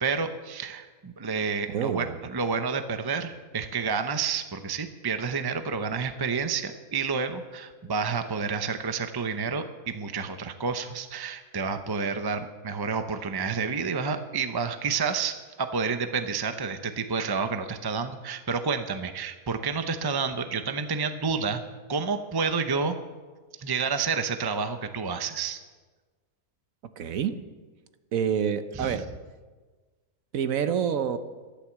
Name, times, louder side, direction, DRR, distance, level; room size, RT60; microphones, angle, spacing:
voice 1, 0.0-2.1 2.3-21.6 21.9-23.0 23.6-25.6 28.8-29.0, right 5 dB, 35° right, 7 dB, 0.4 m, -29 dB
voice 2, 1.7-2.2 27.0-27.4 28.1-29.1 30.3-31.2, right 8 dB, 60° right, 10 dB, 1.2 m, -27 dB
13.5 x 11.5 x 7.3 m, 1.4 s
omnidirectional pair, 1.7 m